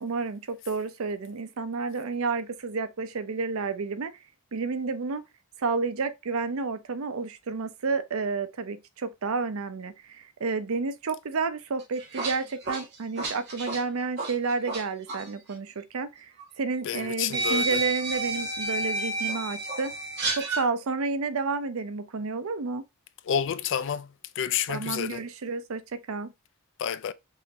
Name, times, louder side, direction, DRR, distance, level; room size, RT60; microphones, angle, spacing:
voice 1, 0.0-4.1 4.5-5.2 5.6-19.9 20.3-22.8 24.7-26.3, right 4 dB, 70° right, 0.6 m, -31 dB
sound 1, 11.8-14.8 15.1-15.3 16.4-16.5 17.3-20.7, right 2 dB, 55° right, 1.9 m, -30 dB
voice 2, 16.8-17.8 23.3-25.2 26.8-27.1, left 8 dB, 60° left, 0.4 m, -29 dB
5.5 x 3.0 x 2.7 m
head